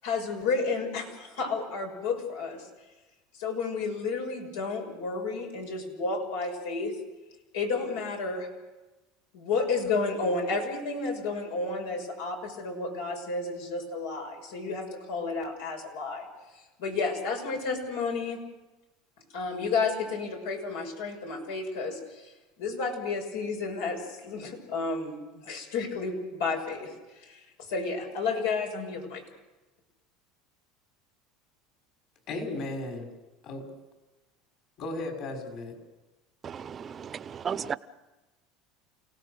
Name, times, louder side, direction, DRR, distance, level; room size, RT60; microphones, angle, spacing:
voice 1, 0.0-2.7 3.3-7.0 7.5-8.5 9.3-16.3 16.8-18.4 19.3-29.2, left 4 dB, 90° left, 6.4 m, -31 dB
voice 2, 32.3-33.1 33.4-33.7 34.8-35.7, left 2 dB, 55° left, 6.0 m, -35 dB
voice 3, 36.4-37.8, right 7 dB, 30° right, 0.8 m, -34 dB
29.5 x 17.5 x 6.7 m
supercardioid pair, 130°, 0 cm